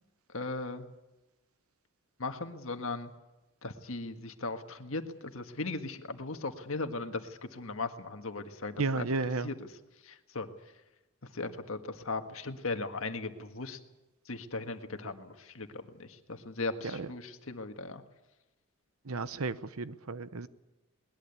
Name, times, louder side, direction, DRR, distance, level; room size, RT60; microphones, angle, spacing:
voice 1, 0.3-0.8 2.2-3.1 3.6-9.1 9.4-9.5 10.0-10.5 11.3-13.8 14.2-18.0, left 3 dB, 65° left, 7 dB, 1.6 m, -38 dB
voice 2, 8.8-9.5 16.8-17.1 19.0-20.5, right 3 dB, 75° right, 14 dB, 0.9 m, -33 dB
21.0 x 20.0 x 8.3 m, 1.0 s
head